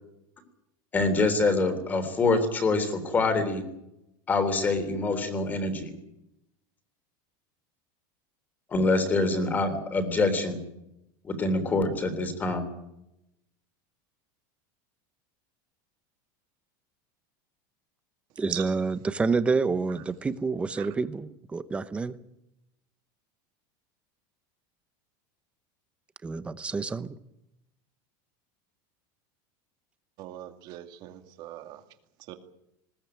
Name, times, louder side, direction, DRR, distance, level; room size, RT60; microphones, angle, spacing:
voice 1, 0.9-3.6 4.3-5.9 8.7-10.6 11.2-12.6, left 3 dB, 15° left, 9 dB, 3.5 m, -25 dB
voice 2, 18.4-22.1 26.2-27.1, right 4 dB, 10° right, 13 dB, 0.9 m, -28 dB
voice 3, 30.2-31.8 32.3-32.4, right 15 dB, 40° right, 7 dB, 2.2 m, -40 dB
20.5 x 18.5 x 9.1 m, 0.84 s
supercardioid pair, 175°, 11 cm